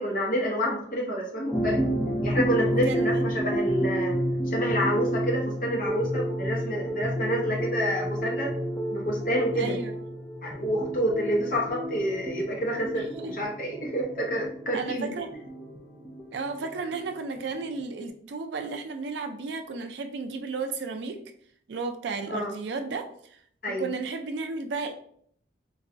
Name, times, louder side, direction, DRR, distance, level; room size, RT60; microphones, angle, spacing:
voice 1, 0.0-1.8 2.2-4.2 4.5-8.5 8.9-9.8 10.4-15.1 22.3-22.5 23.6-23.9, equal, 45° left, -1 dB, 0.8 m, -28 dB
sound 1, 1.5-17.9, right 1 dB, 10° left, 0.3 m, -30 dB
voice 2, 2.7-3.2 9.5-9.9 12.9-13.3 14.7-15.3 16.3-21.2 21.7-23.4 23.8-24.9, right 4 dB, 70° right, 7 dB, 0.4 m, -33 dB
3.9 x 2.2 x 2.5 m, 0.63 s
head